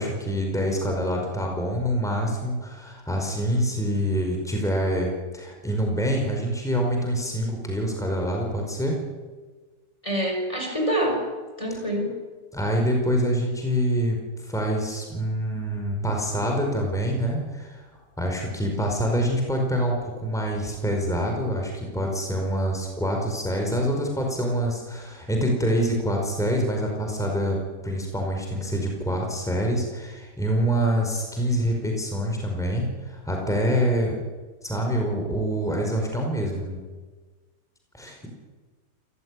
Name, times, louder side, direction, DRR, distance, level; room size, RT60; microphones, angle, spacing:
voice 1, 0.0-9.0 11.7-11.8 12.5-17.8 18.2-34.2 34.6-36.8 37.9-38.3, equal, ahead, 1 dB, 5.1 m, -26 dB
voice 2, 10.0-11.2 11.6-12.2, equal, 15° left, 2 dB, 5.3 m, -26 dB
28.0 x 15.5 x 9.9 m, 1.4 s
omnidirectional pair, 1.9 m